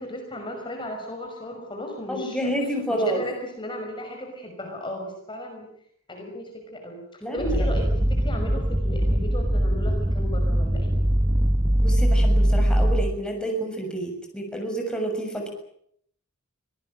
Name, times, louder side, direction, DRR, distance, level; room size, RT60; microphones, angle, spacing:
voice 1, 0.0-2.5 2.9-5.7 6.1-11.0, left 1 dB, 25° left, 3 dB, 5.8 m, -35 dB
voice 2, 2.1-3.2 7.2-7.5 11.8-15.5, right 1 dB, 5° left, 2 dB, 6.8 m, -29 dB
sound 1, 7.4-13.1, equal, 20° right, 1.1 m, -21 dB
25.5 x 19.0 x 8.9 m, 0.69 s
head